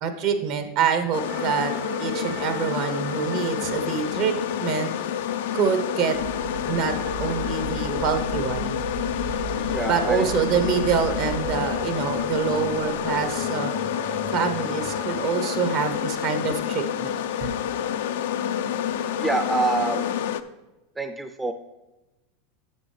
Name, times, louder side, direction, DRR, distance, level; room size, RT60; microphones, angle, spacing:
voice 1, 0.0-1.7 2.0-4.9 5.5-6.2 6.6-6.9 7.2-8.7 9.9-13.7 14.3-17.5, right 6 dB, 60° right, 7 dB, 1.1 m, -26 dB
sound 1, 1.1-20.4, left 9 dB, 75° left, 0.4 m, -28 dB
sound 2, 1.3-20.3, right 5 dB, 40° right, 0.9 m, -41 dB
sound 3, 6.1-11.6, right 3 dB, 80° right, 3.1 m, -35 dB
voice 2, 9.6-10.2 19.2-20.1 21.0-21.5, right 3 dB, 15° right, 7 dB, 0.5 m, -26 dB
10.0 x 7.6 x 3.4 m, 1.0 s
hypercardioid pair, 100°, 0 cm